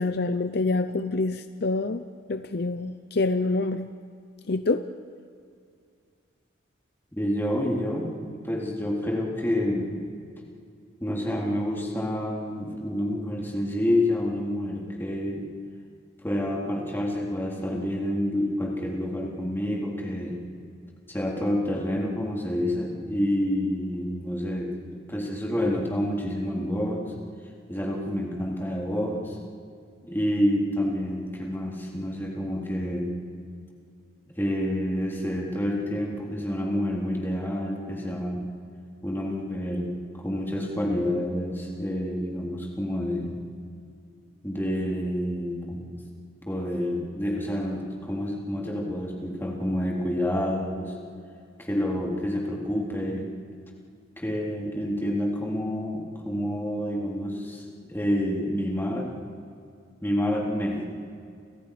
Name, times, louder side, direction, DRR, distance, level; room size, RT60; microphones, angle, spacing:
voice 1, 0.0-3.9 4.5-4.9, left 3 dB, 55° left, 10 dB, 0.7 m, -26 dB
voice 2, 7.2-8.1 8.4-10.0 11.0-15.5 16.2-20.4 21.1-24.7 25.1-27.1 27.7-29.4 30.0-33.2 34.3-38.5 39.0-39.9 40.2-43.4 44.4-45.8 46.5-50.9 51.6-53.3 54.2-57.6 57.9-59.1 60.0-60.8, left 1 dB, 10° left, -2 dB, 3.7 m, -28 dB
29.5 x 28.5 x 5.1 m, 2.3 s
head